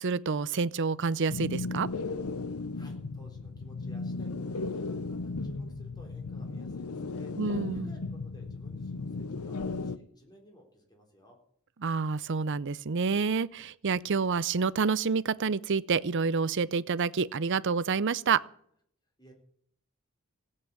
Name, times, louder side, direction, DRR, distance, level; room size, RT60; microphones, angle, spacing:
voice 1, 0.0-1.9 7.4-7.9 11.8-18.4, right 5 dB, 55° right, 0.6 m, -28 dB
sound 1, 1.3-10.0, left 3 dB, 85° left, 0.8 m, -36 dB
voice 2, 2.5-7.3 7.7-11.4 19.2-19.3, equal, 20° left, 3.8 m, -56 dB
16.5 x 8.4 x 8.3 m
head